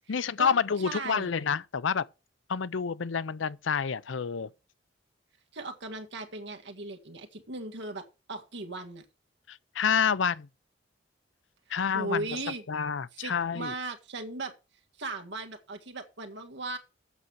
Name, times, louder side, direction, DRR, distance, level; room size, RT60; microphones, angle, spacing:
voice 1, 0.1-2.1 2.5-4.5 9.5-10.5 11.7-12.3 12.7-13.7, left 6 dB, 85° left, 0.6 m, -28 dB
voice 2, 0.8-1.3 5.5-9.0 11.9-12.6 13.1-14.5 15.0-16.8, right 2 dB, 65° right, 1.8 m, -37 dB
8.1 x 6.4 x 7.2 m
head